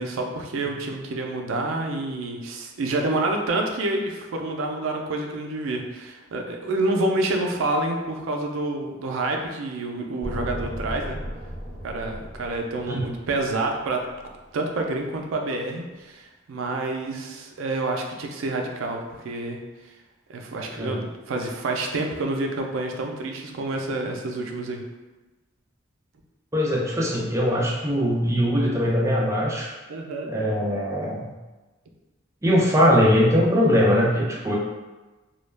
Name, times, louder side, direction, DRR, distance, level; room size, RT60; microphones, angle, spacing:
voice 1, 0.0-11.2 11.8-14.0 14.5-19.6 20.3-24.8 29.9-30.3, right 2 dB, 80° right, 2 dB, 0.4 m, -28 dB
sound 1, 10.2-14.4, equal, 45° left, 1.1 m, -36 dB
voice 2, 26.5-29.7 30.3-31.3 32.4-34.5, equal, 15° right, -4 dB, 0.4 m, -21 dB
2.2 x 2.1 x 3.2 m, 1.2 s
head